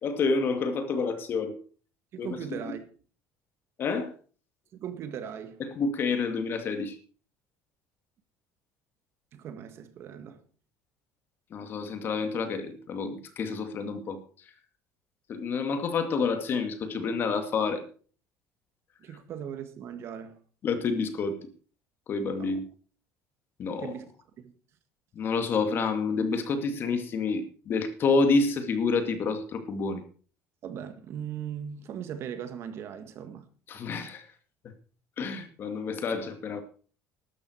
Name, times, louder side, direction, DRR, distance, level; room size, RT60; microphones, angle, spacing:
voice 1, 0.0-1.6 2.2-2.4 2.7-2.8 3.8-4.1 5.6-7.0 11.5-14.2 15.3-17.8 20.6-21.5 22.1-22.7 23.6-23.9 25.2-30.0 33.7-34.2 35.2-36.6, left 4 dB, 40° left, 2.3 m, -28 dB
voice 2, 2.1-2.8 4.7-5.6 9.3-10.5 19.0-20.4 22.3-22.5 23.8-24.1 24.4-24.5 30.6-33.5, right 8 dB, 50° right, 1.8 m, -39 dB
13.0 x 12.0 x 4.6 m
cardioid pair, 140°, 6 cm